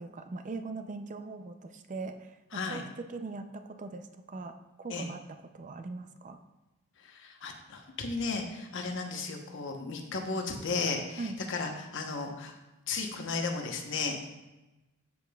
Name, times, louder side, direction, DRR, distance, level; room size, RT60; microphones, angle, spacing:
voice 1, 0.0-6.4 11.2-11.4, right 3 dB, 35° right, 8 dB, 0.4 m, -41 dB
voice 2, 7.1-12.5 12.9-14.3, left 4 dB, 60° left, 3 dB, 0.9 m, -34 dB
13.0 x 5.1 x 2.3 m, 1.1 s
head